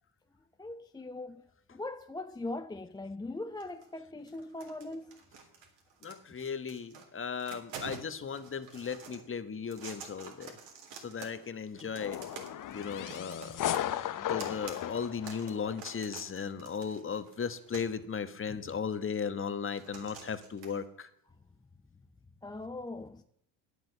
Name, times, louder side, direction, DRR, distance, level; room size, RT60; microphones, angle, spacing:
voice 1, 0.6-1.4 1.7-5.2 14.1-14.2 18.5-18.8 22.4-23.2, left 2 dB, 10° left, 0.5 m, -41 dB
sound 1, 3.6-4.0 4.3-7.1 7.3-9.2 9.6-11.5 11.8-18.0 18.7-18.8 19.7-20.8, right 6 dB, 65° right, 3.6 m, -48 dB
voice 2, 6.0-10.5 11.0-12.2 12.7-13.6 14.0-21.1, left 6 dB, 25° left, 1.2 m, -36 dB
sound 2, 12.0-16.0, left 11 dB, 45° left, 0.8 m, -36 dB
10.5 x 8.1 x 8.0 m
supercardioid pair, 85°, 45 cm